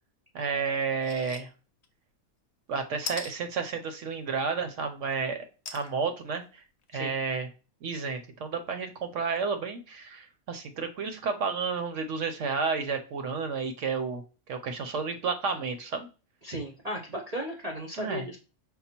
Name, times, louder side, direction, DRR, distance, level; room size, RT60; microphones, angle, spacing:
voice 1, 0.3-1.5 2.7-5.4 5.7-6.4 6.9-7.5 7.8-14.2 14.5-16.1 18.0-18.3, right 5 dB, 65° right, 7 dB, 1.0 m, -31 dB
sound 1, 1.0-1.4 1.8-1.9 3.1-3.3 5.6-5.9 6.5-6.6 6.8-6.9, left 5 dB, 55° left, 0.9 m, -37 dB
voice 2, 16.4-18.4, equal, 35° right, -1 dB, 0.7 m, -35 dB
5.4 x 2.1 x 4.3 m, 0.33 s
omnidirectional pair, 1.5 m